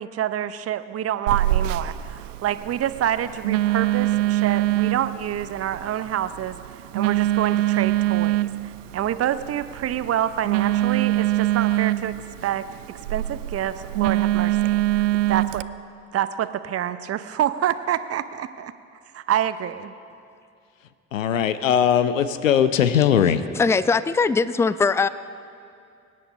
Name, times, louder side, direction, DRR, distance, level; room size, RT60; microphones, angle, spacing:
voice 1, 0.0-12.1 12.4-12.7 13.1-15.6 16.1-18.7 19.1-19.9, right 11 dB, 40° right, 13 dB, 0.8 m, -27 dB
Telephone, 1.3-15.6, right 15 dB, 70° right, 0.5 m, -24 dB
voice 2, 21.1-23.4, left 9 dB, 80° left, 13 dB, 0.7 m, -19 dB
voice 3, 23.6-25.1, left 4 dB, 5° left, 16 dB, 0.4 m, -20 dB
24.0 x 10.5 x 5.4 m, 2.4 s
figure-of-eight pair, 55°, 39 cm